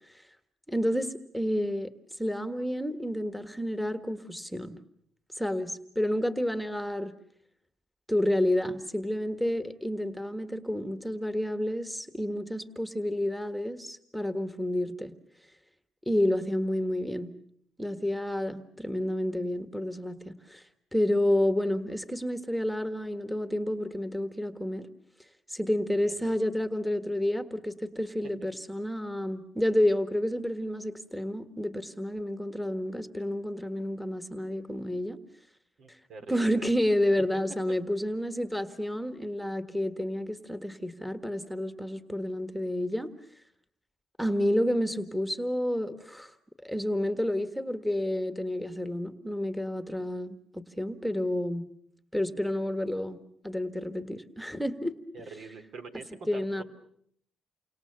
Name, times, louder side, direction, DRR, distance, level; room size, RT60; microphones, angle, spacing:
voice 1, 0.7-1.9 2.2-4.8 5.4-7.1 8.1-15.1 16.0-17.3 17.8-20.6 20.9-24.9 25.5-35.2 35.9-36.0 36.3-43.1 44.2-46.3 46.6-51.6 52.1-55.0 56.3-56.6, left 1 dB, ahead, 8 dB, 1.7 m, -30 dB
voice 2, 35.8-36.7 55.1-56.6, right 4 dB, 65° right, 7 dB, 3.2 m, -44 dB
29.5 x 25.5 x 6.8 m, 0.68 s
cardioid pair, 90°, 0 cm